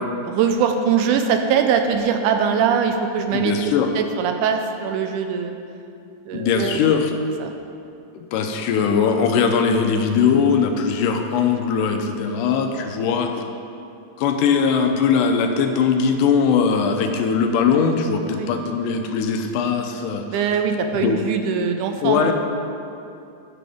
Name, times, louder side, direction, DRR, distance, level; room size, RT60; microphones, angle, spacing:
voice 1, 0.0-3.5 4.0-5.5 6.3-6.8 7.4-7.5 18.3-18.5 20.3-22.3, right 7 dB, 80° right, 5 dB, 2.0 m, -22 dB
voice 2, 3.3-3.9 6.3-7.1 8.1-13.5 14.2-20.3 20.9-21.2 22.0-22.3, left 6 dB, 85° left, 5 dB, 2.3 m, -20 dB
15.0 x 6.0 x 3.5 m, 2.6 s
omnidirectional pair, 3.7 m